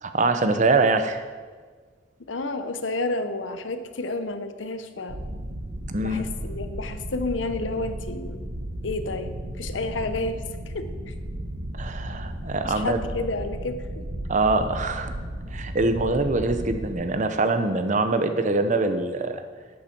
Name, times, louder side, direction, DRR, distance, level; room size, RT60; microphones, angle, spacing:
voice 1, 0.0-1.2 5.9-6.2 11.7-13.0 14.3-15.1 15.5-19.4, right 3 dB, 40° right, 8 dB, 0.8 m, -24 dB
voice 2, 2.3-5.2 6.0-8.4 8.8-11.1 12.6-14.0, left 2 dB, 85° left, 9 dB, 0.8 m, -31 dB
sound 1, 5.1-16.9, right 1 dB, 70° right, 1.2 m, -34 dB
11.5 x 8.8 x 4.5 m, 1.5 s
head